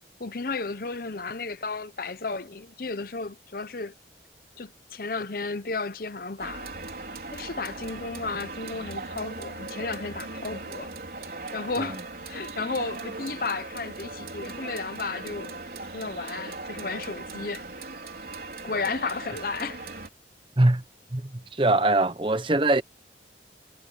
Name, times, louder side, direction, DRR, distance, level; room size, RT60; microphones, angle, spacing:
voice 1, 0.2-3.9 4.6-6.7 7.3-10.9 11.5-15.6 15.9-17.6 18.6-19.9, left 4 dB, 50° left, 0.8 m, -33 dB
sound 1, 6.4-20.1, right 3 dB, 55° right, 4.3 m, -39 dB
voice 2, 21.1-22.8, right 2 dB, 30° right, 0.9 m, -22 dB
head